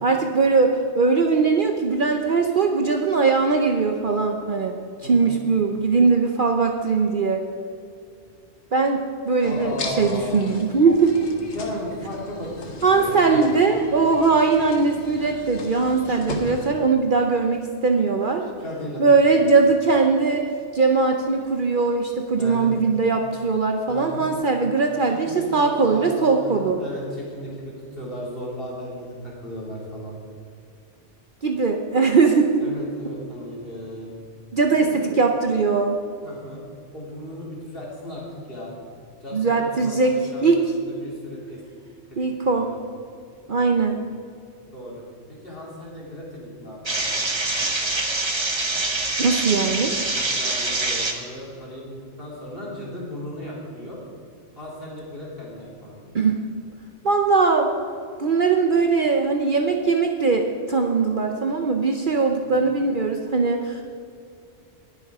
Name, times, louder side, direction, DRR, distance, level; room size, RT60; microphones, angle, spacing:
voice 1, 0.0-4.7 5.0-7.4 8.7-11.1 12.8-18.4 19.0-20.4 20.7-26.8 31.4-32.5 34.5-36.0 39.3-40.1 40.4-40.6 42.2-42.7 43.5-44.0 49.2-49.9 56.1-56.4 57.0-57.7 58.2-63.8, right 4 dB, 50° right, 3 dB, 0.9 m, -20 dB
voice 2, 5.0-5.3 9.4-10.5 11.5-13.5 18.6-19.7 22.4-22.8 23.9-24.2 25.1-30.2 32.6-34.1 34.7-35.2 36.2-36.6 36.9-38.7 39.2-41.6 42.1-42.8 43.5-43.8 44.7-45.0 45.3-47.2 50.3-54.0 54.5-56.0 62.4-62.7, left 1 dB, 50° left, -5 dB, 3.2 m, -36 dB
sound 1, 9.4-16.7, left 2 dB, 75° left, 1.6 m, -37 dB
sound 2, 46.9-51.2, right 2 dB, 25° right, 1.1 m, -25 dB
20.0 x 7.3 x 4.8 m, 2.5 s
omnidirectional pair, 1.2 m